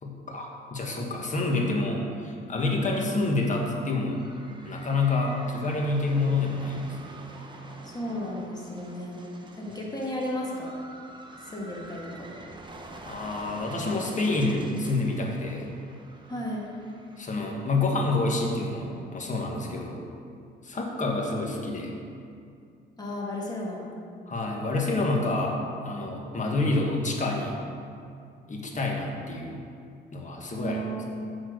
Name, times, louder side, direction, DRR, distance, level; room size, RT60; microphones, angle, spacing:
voice 1, 0.0-4.2 4.6-7.0 13.1-15.7 17.2-20.0 20.6-21.9 24.3-27.6 28.5-29.6 30.1-30.8, left 2 dB, 40° left, 0 dB, 1.5 m, -28 dB
sound 1, 3.2-19.8, right 2 dB, 25° right, 0.9 m, -47 dB
voice 2, 7.8-9.2 9.6-10.7 11.4-12.3 16.3-16.7 23.0-23.9 30.5-31.3, left 1 dB, 20° left, -4 dB, 1.8 m, -34 dB
8.3 x 4.4 x 6.4 m, 2.4 s
cardioid pair, 90°, 20 cm